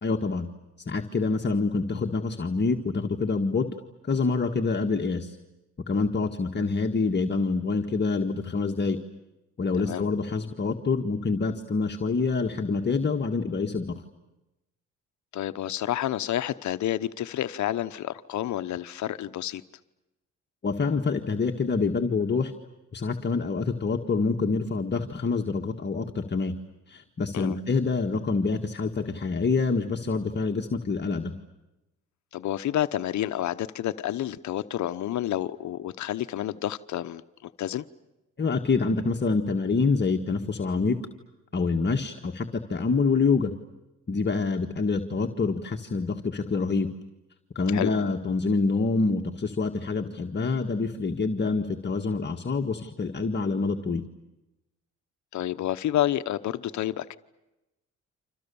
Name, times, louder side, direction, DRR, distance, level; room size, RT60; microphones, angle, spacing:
voice 1, 0.0-0.5 0.9-3.7 4.0-5.4 5.9-9.0 9.6-14.0 20.6-22.5 22.9-26.6 26.9-31.3 38.4-41.0 41.5-43.5 44.1-46.9 47.6-54.0, left 4 dB, 35° left, 2 dB, 1.7 m, -26 dB
voice 2, 15.3-19.6 27.3-27.6 32.3-37.8 47.7-47.9 55.3-57.2, left 12 dB, 70° left, 12 dB, 1.0 m, -29 dB
29.5 x 27.0 x 7.1 m, 0.98 s
cardioid pair, 90°, 30 cm